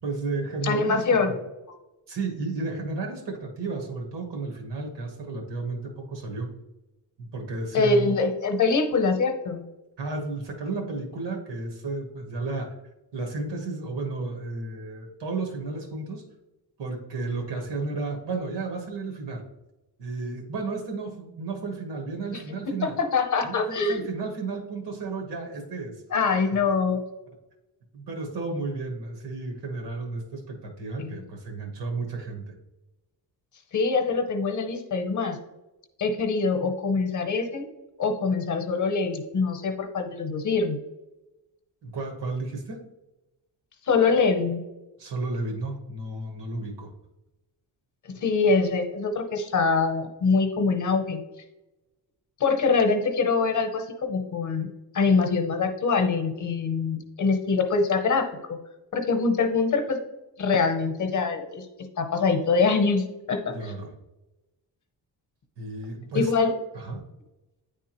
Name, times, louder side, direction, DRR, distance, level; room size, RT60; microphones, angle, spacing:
voice 1, 0.0-1.0 2.1-6.5 7.2-8.1 10.0-12.8 13.1-16.2 16.8-19.4 20.0-23.0 23.4-26.0 27.9-32.5 41.8-42.8 45.0-46.9 48.1-48.2 63.5-63.9 65.6-66.3 66.7-67.0, right 3 dB, 85° right, 3 dB, 1.4 m, -33 dB
voice 2, 0.6-1.3 7.7-9.6 22.3-24.0 26.1-27.0 31.0-31.1 33.7-35.4 36.0-37.7 38.0-40.8 43.9-44.6 48.0-51.2 52.4-58.6 58.9-60.0 60.4-61.7 62.0-63.7 66.1-66.6, left 4 dB, 45° left, 5 dB, 0.8 m, -24 dB
9.1 x 3.5 x 2.9 m, 0.99 s
wide cardioid pair, 175°, 41 cm